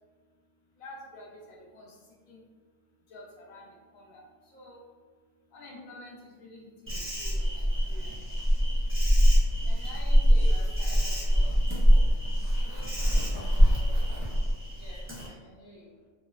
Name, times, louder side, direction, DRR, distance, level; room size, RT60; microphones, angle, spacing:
voice 1, 0.8-1.9 2.3-2.4 3.1-4.2 4.5-4.8 5.5-8.2 9.6-11.6 12.6-12.9, left 1 dB, 90° left, -4 dB, 1.2 m, -48 dB
Insect, 6.9-15.3, equal, 15° right, 0.5 m, -24 dB
voice 2, 10.2-11.4 13.4-14.0 14.8-15.9, left 1 dB, 75° left, -10 dB, 1.5 m, -53 dB
3.8 x 2.1 x 2.3 m, 1.5 s
omnidirectional pair, 1.4 m